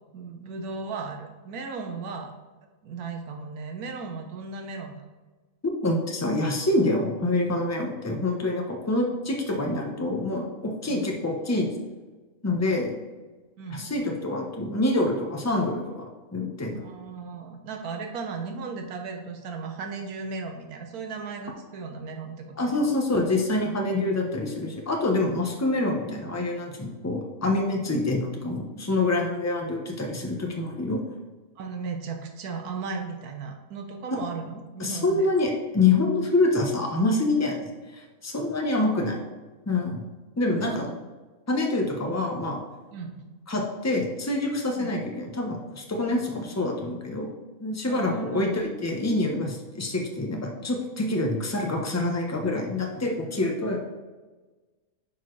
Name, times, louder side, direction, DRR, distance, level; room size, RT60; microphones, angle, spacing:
voice 1, 0.1-2.3 2.8-5.0 10.9-11.1 13.6-13.9 16.7-22.9 31.6-35.3 38.8-39.2 40.6-40.8 42.9-43.2 44.8-44.9 47.9-48.4, right 4 dB, 80° right, 4 dB, 1.4 m, -36 dB
voice 2, 5.8-11.7 12.4-13.0 13.7-16.1 16.3-16.8 22.6-31.0 34.1-34.2 34.8-39.2 39.7-40.0 40.4-40.9 41.5-42.6 43.5-47.3 47.6-53.8, left 2 dB, 15° left, 1 dB, 0.8 m, -26 dB
10.5 x 4.4 x 3.2 m, 1.3 s
omnidirectional pair, 1.5 m